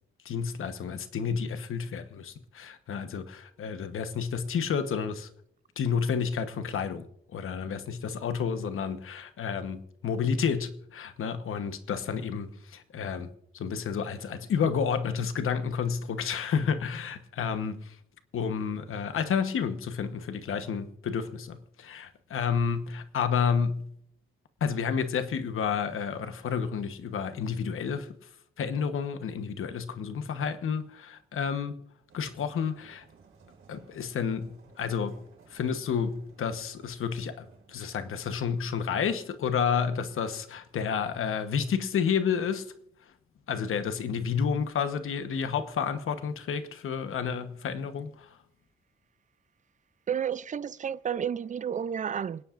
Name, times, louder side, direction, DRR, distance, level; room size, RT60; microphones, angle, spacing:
voice 1, 0.2-5.3 5.8-18.0 18.3-23.9 24.6-28.1 28.6-31.8 32.1-33.0 33.7-35.2 35.5-42.7 43.5-48.4, left 6 dB, 90° left, 1.1 m, -30 dB
sound 1, 32.1-37.8, right 5 dB, 90° right, 4.6 m, -58 dB
voice 2, 50.1-52.4, right 8 dB, 35° right, 0.4 m, -31 dB
27.0 x 10.0 x 2.5 m
wide cardioid pair, 105°, 21 cm